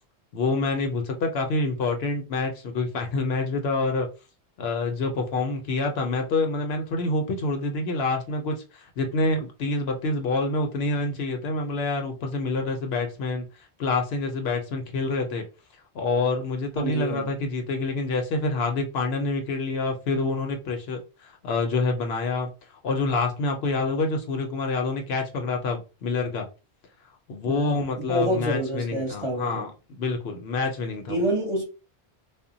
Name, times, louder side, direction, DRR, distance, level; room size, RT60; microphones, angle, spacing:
voice 1, 0.3-4.1 4.6-13.5 13.8-15.5 15.9-22.5 22.8-26.5 27.3-31.2, left 3 dB, 70° left, 0.8 m, -27 dB
voice 2, 16.7-17.4 27.5-29.7 31.1-31.6, right 1 dB, 30° right, 0.8 m, -28 dB
2.1 x 2.1 x 3.7 m
omnidirectional pair, 1.1 m